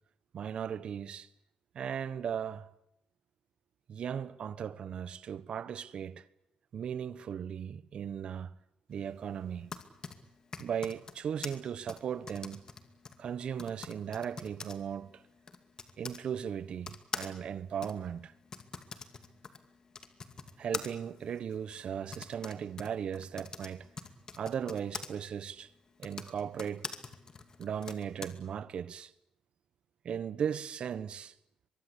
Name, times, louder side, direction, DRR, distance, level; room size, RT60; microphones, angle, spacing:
voice 1, 0.3-1.3 1.7-2.7 3.9-6.3 6.7-8.6 8.9-9.7 10.6-12.6 13.2-15.2 16.0-18.3 20.6-23.9 24.4-25.7 26.0-26.9 27.6-29.1 30.0-31.3, right 8 dB, 55° right, 1.2 m, -37 dB
Typing, 9.4-16.2 16.8-25.1 25.9-28.3, left 4 dB, 35° left, 2.4 m, -45 dB
23.5 x 23.0 x 8.4 m
cardioid pair, 130°, 2 cm